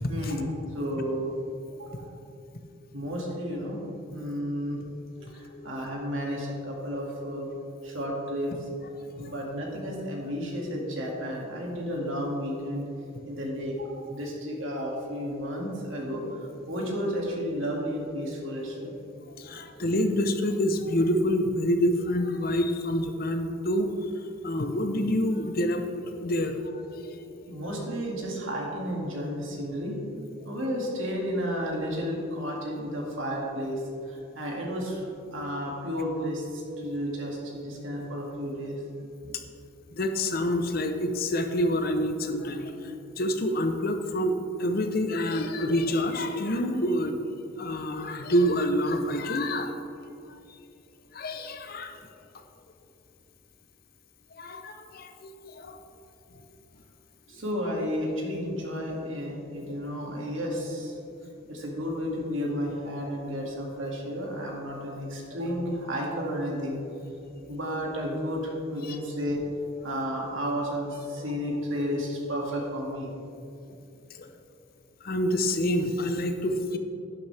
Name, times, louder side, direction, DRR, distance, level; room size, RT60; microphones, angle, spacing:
voice 1, 0.1-1.3 1.8-2.1 2.9-3.8 4.1-4.8 5.3-7.5 7.8-8.5 9.2-12.9 13.2-19.6 27.5-30.0 30.4-35.1 35.3-38.8 57.3-61.0 61.5-66.8 67.5-69.4 69.8-73.1, equal, 70° right, -2 dB, 2.2 m, -32 dB
voice 2, 5.2-5.7 9.1-9.2 19.4-24.1 24.4-27.3 39.3-39.4 39.9-47.2 47.6-49.8 50.3-50.6 51.1-52.0 54.3-55.8 56.3-56.4 67.4-67.5 68.8-69.0 74.2-74.3 75.0-76.8, equal, 45° left, 6 dB, 0.7 m, -27 dB
11.5 x 10.5 x 3.4 m, 2.7 s
head